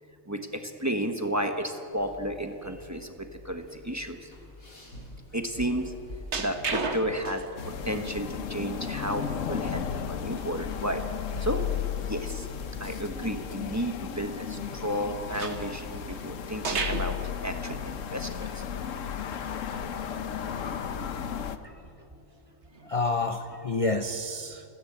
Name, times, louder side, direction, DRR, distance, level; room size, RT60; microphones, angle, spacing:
voice 1, 0.3-4.3 5.3-5.9 6.3-11.6 11.9-18.7, equal, 15° right, 5 dB, 1.2 m, -33 dB
sound 1, 1.8-16.6, left 1 dB, 90° left, 4.0 m, -47 dB
sound 2, 6.3-7.6 8.1-8.2 10.4-10.5 10.8-10.9 11.3-11.4 15.3-16.2 16.6-17.2 17.7-17.9 18.4-18.5 19.7-19.8 20.2-20.5 22.7-22.9, right 4 dB, 55° right, 1.7 m, -33 dB
sound 3, 7.6-21.6, left 8 dB, 70° left, 1.2 m, -34 dB
voice 2, 22.8-24.6, left 2 dB, 35° left, 8 dB, 0.6 m, -29 dB
29.0 x 10.5 x 8.6 m, 2.6 s
omnidirectional pair, 1.4 m